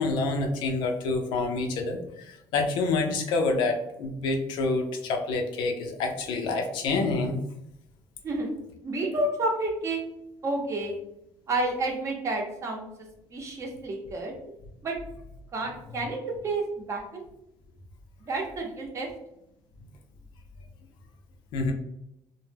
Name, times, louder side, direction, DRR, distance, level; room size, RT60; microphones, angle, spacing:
voice 1, 0.0-7.4 21.5-21.7, left 3 dB, 70° left, 3 dB, 0.5 m, -27 dB
voice 2, 8.8-10.0 10.4-10.9 11.5-12.9 13.3-14.3 14.8-14.9 15.5-17.2 18.3-19.1, right 2 dB, 35° right, 0 dB, 0.7 m, -30 dB
2.1 x 2.1 x 3.2 m, 0.80 s
cardioid pair, 120°, 8 cm